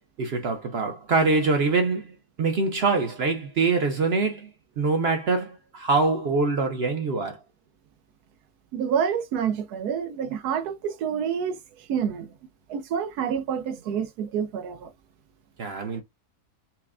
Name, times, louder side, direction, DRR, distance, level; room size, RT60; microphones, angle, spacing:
voice 1, 0.2-7.4 15.6-16.0, right 3 dB, 60° right, 0.7 m, -24 dB
voice 2, 8.7-11.6 11.9-12.3 12.7-14.9, right 7 dB, 80° right, 1.2 m, -28 dB
5.7 x 2.1 x 2.4 m
omnidirectional pair, 1.6 m